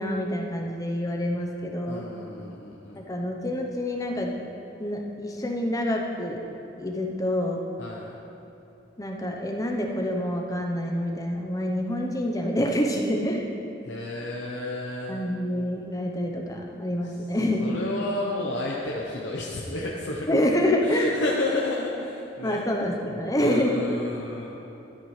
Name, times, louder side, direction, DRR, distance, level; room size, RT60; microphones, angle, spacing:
voice 1, 0.0-2.1 3.1-4.3 4.8-6.4 6.8-7.6 9.0-13.5 15.1-17.6 20.3-21.1 22.4-23.7, left 1 dB, 20° left, 1 dB, 0.8 m, -27 dB
voice 2, 1.9-3.0 7.8-8.2 13.8-15.3 17.6-20.4 20.8-22.6 23.4-24.5, left 2 dB, 80° left, -4 dB, 0.9 m, -31 dB
13.0 x 9.3 x 3.3 m, 2.9 s
head